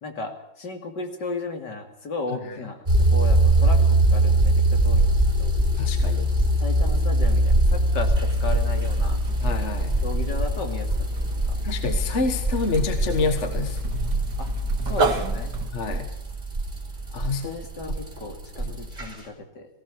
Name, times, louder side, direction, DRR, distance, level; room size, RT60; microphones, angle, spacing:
voice 1, 0.0-5.1 5.4-5.5 6.6-9.2 10.0-10.9 11.2-11.3 14.4-14.5 14.9-15.6 17.4-19.7, left 3 dB, 60° left, 4 dB, 3.3 m, -34 dB
sound 1, 2.9-19.2, right 1 dB, 25° right, 4.0 m, -23 dB
voice 2, 5.8-6.3 9.4-10.0 11.6-13.8 15.7-16.1 17.1-17.9 18.6-18.8, left 3 dB, 40° left, 7 dB, 1.7 m, -28 dB
sound 2, 8.3-15.7, right 3 dB, 60° right, 2.4 m, -31 dB
19.0 x 17.0 x 8.5 m, 0.76 s
omnidirectional pair, 2.1 m